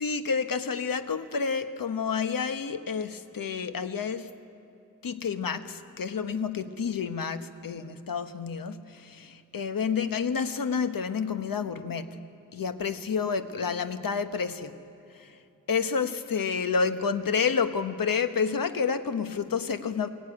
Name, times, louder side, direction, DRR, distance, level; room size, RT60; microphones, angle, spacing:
voice 1, 0.0-4.3 5.0-12.1 12.5-14.7 15.2-15.3 15.7-20.1, left 6 dB, 75° left, 10 dB, 1.0 m, -29 dB
23.0 x 14.5 x 9.7 m, 2.7 s
wide cardioid pair, 95°, 35 cm